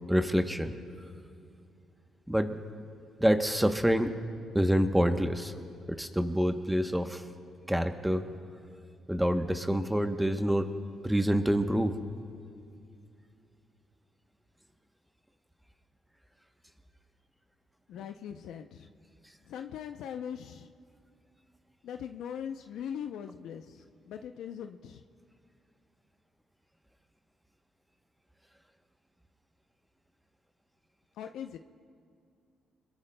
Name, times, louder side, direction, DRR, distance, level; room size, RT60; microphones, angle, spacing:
voice 1, 0.1-0.7 2.3-2.6 3.2-4.1 4.5-5.5 6.0-7.2 7.7-8.3 9.1-10.7 11.0-11.9, equal, 5° right, 7 dB, 0.9 m, -27 dB
voice 2, 17.9-18.9 19.5-20.7 21.8-25.0 31.2-31.6, left 8 dB, 80° left, 6 dB, 0.5 m, -40 dB
29.0 x 21.5 x 2.2 m, 2.4 s
cardioid pair, 90°, 0 cm